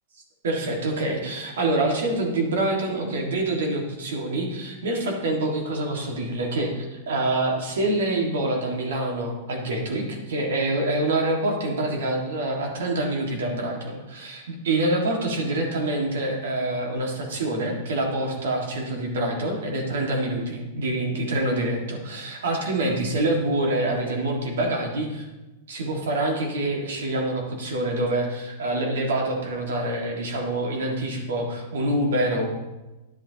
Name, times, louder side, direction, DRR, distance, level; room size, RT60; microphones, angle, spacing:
voice 1, 0.4-25.2 25.7-32.4, right 1 dB, 80° right, 1 dB, 1.9 m, -26 dB
10.5 x 7.6 x 2.9 m, 1.0 s
hypercardioid pair, 125°, 0 cm